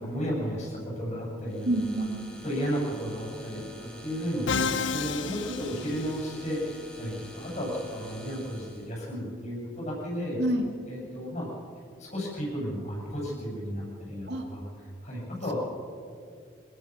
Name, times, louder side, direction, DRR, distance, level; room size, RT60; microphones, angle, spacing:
voice 1, 0.0-1.7 2.4-10.4 10.9-11.5 12.0-14.7 15.0-15.5, equal, 35° left, -4 dB, 7.6 m, -33 dB
sound 1, 1.5-8.9, equal, 5° left, 4.6 m, -47 dB
voice 2, 1.6-2.3 10.4-10.7 14.3-14.5, right 1 dB, 60° right, 2 dB, 2.3 m, -27 dB
Musical instrument, 4.5-6.6, left 5 dB, 75° left, 0.8 m, -31 dB
26.0 x 18.5 x 6.3 m, 2.3 s
head